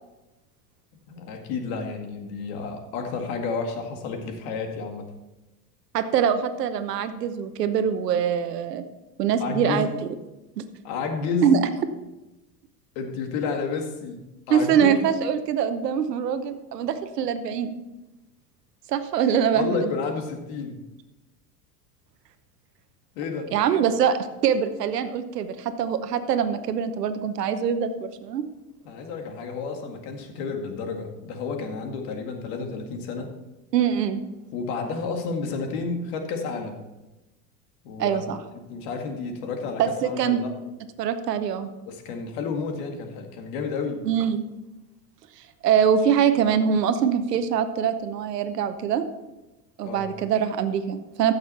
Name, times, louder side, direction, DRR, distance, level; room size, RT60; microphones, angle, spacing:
voice 1, 1.1-5.1 9.4-9.9 10.8-11.5 13.0-15.1 19.5-20.8 23.2-23.5 28.8-33.4 34.5-36.8 37.8-38.2 38.7-40.5 41.9-44.1 49.8-50.1, left 4 dB, 65° left, 4 dB, 2.1 m, -31 dB
voice 2, 5.9-8.8 9.2-9.9 10.6-10.7 11.4-11.6 14.5-17.7 18.9-19.9 23.5-28.4 33.7-34.2 38.0-38.4 39.8-40.4 41.0-41.7 44.0-44.4 45.6-49.0 49.8-51.3, right 8 dB, 85° right, 10 dB, 1.0 m, -23 dB
15.0 x 6.6 x 4.3 m, 1.0 s
hypercardioid pair, 95°, 47 cm